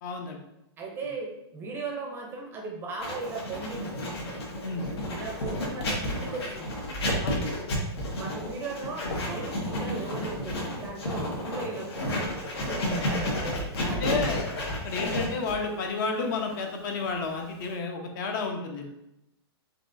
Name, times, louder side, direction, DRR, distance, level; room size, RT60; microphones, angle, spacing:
voice 1, 0.0-0.4 4.6-4.9 7.2-7.5 12.9-13.1 13.8-14.5 14.8-18.9, left 4 dB, 45° left, 3 dB, 0.8 m, -31 dB
voice 2, 0.8-4.0 5.1-6.8 8.2-12.4 12.7-14.3, right 3 dB, 15° right, 0 dB, 0.6 m, -37 dB
Writing, 3.0-17.7, left 1 dB, 75° left, 1.4 m, -32 dB
4.3 x 3.9 x 2.6 m, 0.85 s
hypercardioid pair, 155°, 14 cm